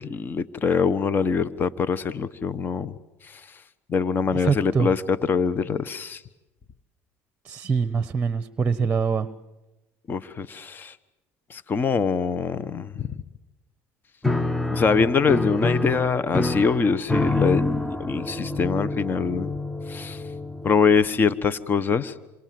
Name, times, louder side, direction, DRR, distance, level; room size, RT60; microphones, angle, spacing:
voice 1, 0.0-2.9 3.2-3.5 3.9-6.2 10.1-11.0 11.5-13.2 14.7-19.5 19.9-20.2 20.6-22.1, left 5 dB, 30° left, 16 dB, 1.2 m, -24 dB
voice 2, 4.3-4.9 7.4-9.3, right 5 dB, 20° right, 13 dB, 1.2 m, -24 dB
Piano, 14.2-21.0, left 2 dB, 5° left, 1.0 m, -27 dB
28.0 x 27.0 x 7.8 m, 1.0 s
supercardioid pair, 100°, 7 cm